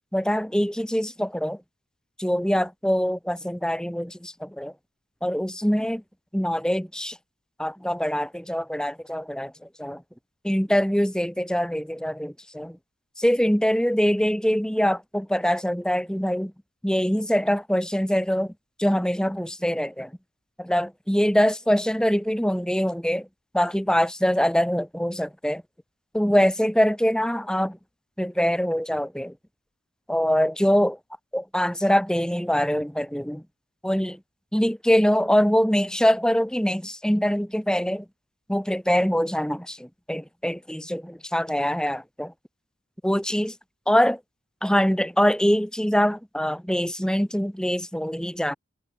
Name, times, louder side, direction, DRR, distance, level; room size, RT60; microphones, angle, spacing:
voice 1, 0.1-1.6 2.2-4.7 5.2-6.0 6.3-7.2 7.6-10.0 10.4-12.8 13.2-16.5 16.8-18.5 18.8-20.1 20.6-23.3 23.5-25.6 26.1-27.8 28.2-29.4 30.1-31.0 31.3-33.4 33.8-34.2 34.5-38.0 38.5-42.3 43.0-43.5 43.9-44.2 44.6-48.5, equal, 5° left, 1.5 m, -23 dB
head